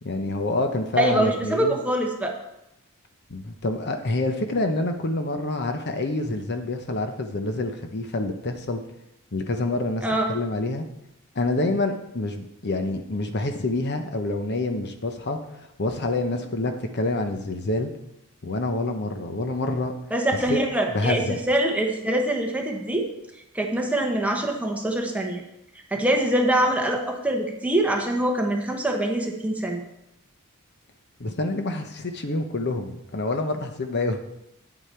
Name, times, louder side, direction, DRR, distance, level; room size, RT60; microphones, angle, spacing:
voice 1, 0.0-1.8 3.3-8.8 9.3-10.9 11.3-17.9 18.4-19.9 20.5-20.6 20.9-21.4 31.2-34.2, left 2 dB, 50° left, 6 dB, 0.9 m, -27 dB
voice 2, 1.0-2.3 10.0-10.3 20.1-23.1 23.5-25.4 25.9-29.8, right 1 dB, 5° right, 1 dB, 1.2 m, -24 dB
9.6 x 8.4 x 4.4 m, 0.85 s
head